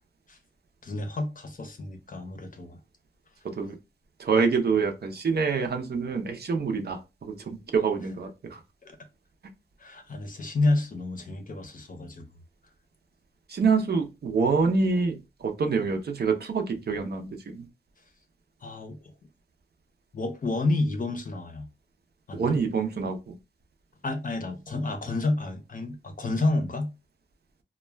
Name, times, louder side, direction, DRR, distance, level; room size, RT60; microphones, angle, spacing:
voice 1, 0.8-2.8 8.8-9.0 9.8-12.2 18.6-19.1 20.1-21.7 22.3-22.6 24.0-26.9, left 2 dB, 45° left, 0.6 m, -30 dB
voice 2, 3.4-3.8 4.2-8.6 13.5-17.7 22.3-23.4, right 5 dB, 55° right, 0.5 m, -26 dB
2.3 x 2.1 x 3.2 m
wide cardioid pair, 105°, 20 cm